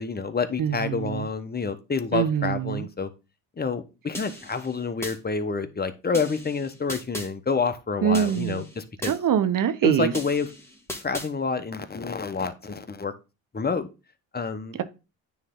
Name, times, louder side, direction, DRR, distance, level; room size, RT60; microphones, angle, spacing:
voice 1, 0.0-3.1 3.6-9.1 9.8-10.5 11.0-13.1 13.5-13.9 14.3-14.8, left 4 dB, 25° left, 1.0 m, -28 dB
voice 2, 0.6-1.3 2.1-2.9 8.0-8.7 9.0-10.1, right 9 dB, 55° right, 0.9 m, -24 dB
sound 1, 4.1-5.2 6.1-7.3 8.1-9.2 10.1-11.3, equal, 5° left, 2.0 m, -37 dB
9.3 x 3.2 x 3.8 m
supercardioid pair, 70°, 38 cm